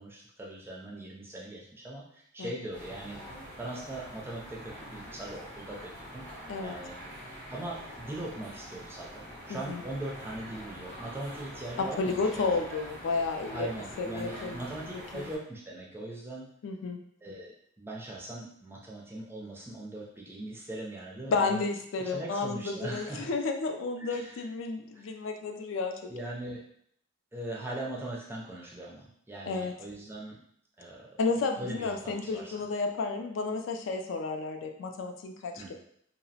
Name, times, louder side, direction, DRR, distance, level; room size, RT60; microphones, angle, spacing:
voice 1, 0.0-3.2 3.6-6.2 6.6-7.0 7.5-12.5 13.5-16.5 17.2-21.7 21.9-23.3 24.1-24.5 24.9-25.1 26.1-26.6 27.3-30.4 30.8-31.1 31.6-32.7 35.6-35.7, right 1 dB, 10° right, -3 dB, 0.3 m, -40 dB
sound 1, 2.7-15.4, equal, 10° left, 0.7 m, -45 dB
voice 2, 9.5-9.8 11.8-13.7 14.0-14.6 16.6-17.0 21.3-26.0 29.4-29.7 31.2-35.7, left 4 dB, 65° left, 4 dB, 0.3 m, -31 dB
2.7 x 2.0 x 2.7 m, 0.68 s
head